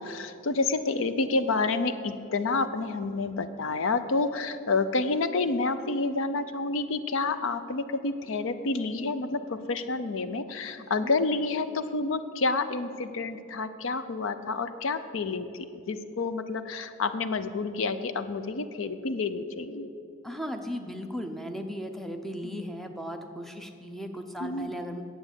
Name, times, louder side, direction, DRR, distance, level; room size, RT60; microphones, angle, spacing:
voice 1, 0.0-19.9 22.4-22.6 24.4-24.7, left 3 dB, 65° left, 11 dB, 0.5 m, -29 dB
voice 2, 10.8-11.1 20.2-25.0, equal, ahead, 5 dB, 0.6 m, -36 dB
9.7 x 8.1 x 8.0 m, 2.6 s
head